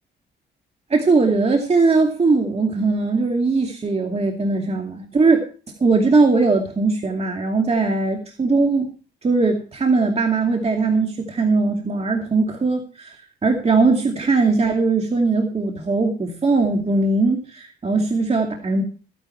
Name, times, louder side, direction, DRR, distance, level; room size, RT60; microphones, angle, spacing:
voice 1, 0.9-5.4 5.8-8.9 9.2-13.1 13.4-18.8, right 3 dB, 30° right, 2 dB, 2.5 m, -19 dB
15.0 x 10.0 x 4.6 m, 0.37 s
cardioid pair, 90°, 20 cm